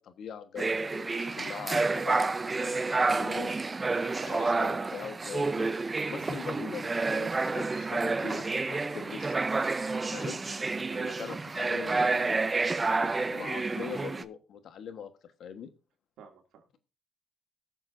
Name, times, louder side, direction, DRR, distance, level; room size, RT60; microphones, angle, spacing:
voice 1, 0.0-3.5 4.2-5.7 6.1-9.4 10.1-10.4 11.2-12.4 12.8-15.7, left 7 dB, 70° left, 9 dB, 1.3 m, -42 dB
sound 1, 0.6-14.2, right 3 dB, 25° right, 0.6 m, -29 dB
voice 2, 3.9-4.3 10.9-11.3 16.2-16.8, right 7 dB, 80° right, 2 dB, 2.5 m, -48 dB
21.5 x 7.3 x 2.6 m, 0.31 s
cardioid pair, 90°, 0 cm